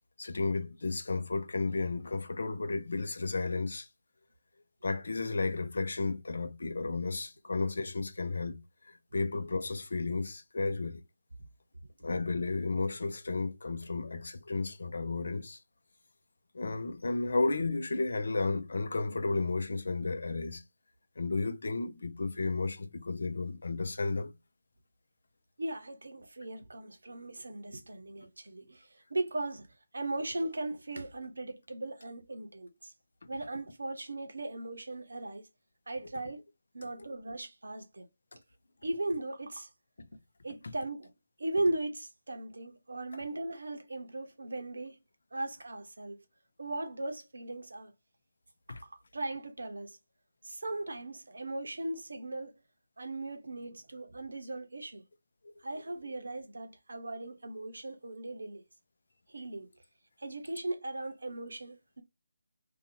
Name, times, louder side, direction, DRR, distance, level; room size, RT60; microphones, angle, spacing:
voice 1, 0.2-3.9 4.8-8.6 8.9-11.0 12.0-15.6 16.5-20.6 21.2-24.3 37.0-37.1 48.7-48.8 55.7-55.8, left 3 dB, 65° left, 0.5 m, -33 dB
voice 2, 25.6-32.9 33.3-35.4 35.9-36.4 36.7-38.1 38.8-39.7 40.4-41.1 41.4-45.0 45.3-46.2 46.6-47.9 48.7-50.0 50.4-52.6 53.0-55.0 55.6-58.6 59.3-59.7 60.2-62.0, right 2 dB, 70° right, 0.7 m, -38 dB
2.7 x 2.3 x 2.7 m
figure-of-eight pair, 155°, 0 cm